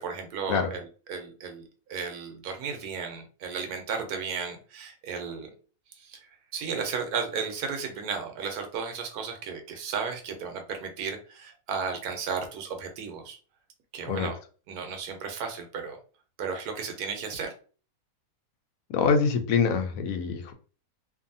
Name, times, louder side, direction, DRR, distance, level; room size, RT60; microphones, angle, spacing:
voice 1, 0.0-5.5 5.9-13.4 13.9-14.4 14.7-16.0 16.4-17.5, right 5 dB, 80° right, 4 dB, 1.2 m, -34 dB
voice 2, 18.9-20.5, left 5 dB, 70° left, 6 dB, 0.9 m, -25 dB
2.6 x 2.6 x 2.6 m, 0.39 s
omnidirectional pair, 1.6 m